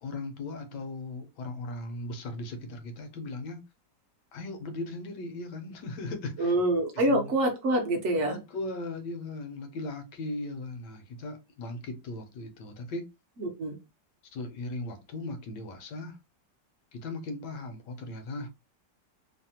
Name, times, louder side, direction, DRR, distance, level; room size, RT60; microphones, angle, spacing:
voice 1, 0.0-3.6 4.3-6.6 6.9-7.3 8.2-13.1 14.3-16.2 16.9-18.5, left 2 dB, 75° left, 1.3 m, -38 dB
voice 2, 6.4-8.4 13.4-13.8, right 1 dB, 60° right, 0.8 m, -26 dB
3.2 x 2.1 x 2.7 m
omnidirectional pair, 1.9 m